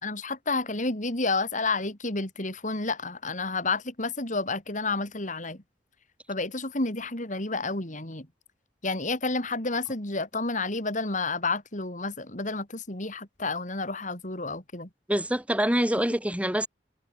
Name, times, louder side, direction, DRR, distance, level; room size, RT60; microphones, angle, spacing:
voice 1, 0.0-5.6 6.3-8.3 8.8-14.9, left 3 dB, 45° left, 4.5 m, -30 dB
voice 2, 15.1-16.7, equal, 10° right, 6.5 m, -25 dB
head